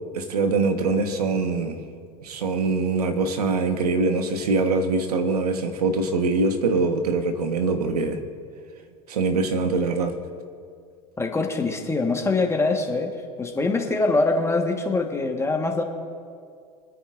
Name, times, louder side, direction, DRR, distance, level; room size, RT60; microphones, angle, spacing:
voice 1, 0.1-1.8 2.2-8.2 9.1-10.2, right 3 dB, 85° right, 7 dB, 1.3 m, -23 dB
voice 2, 11.2-15.8, left 3 dB, 15° left, 3 dB, 1.4 m, -24 dB
25.0 x 9.7 x 2.6 m, 2.2 s
hypercardioid pair, 85°, 19 cm